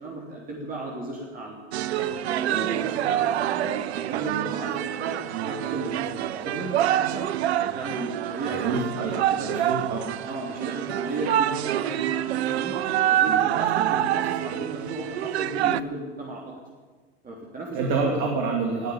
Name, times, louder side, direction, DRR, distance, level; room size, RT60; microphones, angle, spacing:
voice 1, 0.0-1.6 1.9-7.3 7.6-8.8 9.1-9.5 10.2-12.8 13.1-16.5 17.2-18.2, right 2 dB, 25° right, -2 dB, 3.2 m, -35 dB
sound 1, 1.7-15.8, right 12 dB, 70° right, 0.7 m, -26 dB
voice 2, 8.5-9.2 9.4-10.1 17.7-18.9, right 4 dB, 55° right, 1 dB, 2.8 m, -27 dB
18.5 x 6.7 x 10.0 m, 1.4 s
hypercardioid pair, 95°, 33 cm